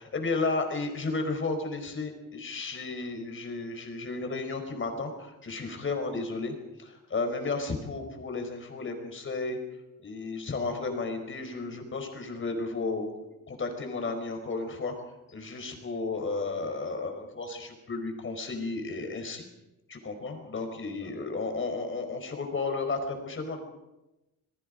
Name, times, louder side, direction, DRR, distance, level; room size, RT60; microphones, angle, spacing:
voice 1, 0.0-9.6 10.0-14.9 15.3-19.5 19.9-23.6, left 3 dB, 40° left, 5 dB, 4.6 m, -33 dB
27.0 x 21.5 x 5.2 m, 0.98 s
wide cardioid pair, 135°, 31 cm